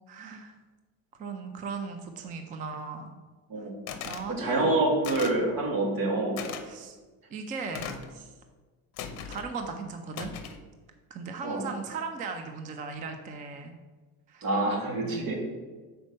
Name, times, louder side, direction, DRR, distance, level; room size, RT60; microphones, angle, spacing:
voice 1, 0.1-0.5 1.2-3.1 4.0-4.8 6.6-7.0 7.3-8.3 9.3-10.3 11.1-13.7 14.3-14.5 15.0-15.3, right 4 dB, 20° right, 6 dB, 0.3 m, -37 dB
sound 1, 3.9-4.3 5.0-5.4 6.4-6.6 7.7-8.1 9.0-9.5 10.1-10.6, left 7 dB, 45° left, 0.7 m, -38 dB
voice 2, 4.3-6.4 11.4-11.7 14.4-15.3, right 2 dB, 65° right, -1 dB, 2.1 m, -27 dB
6.4 x 4.5 x 5.3 m, 1.3 s
cardioid pair, 165°, 38 cm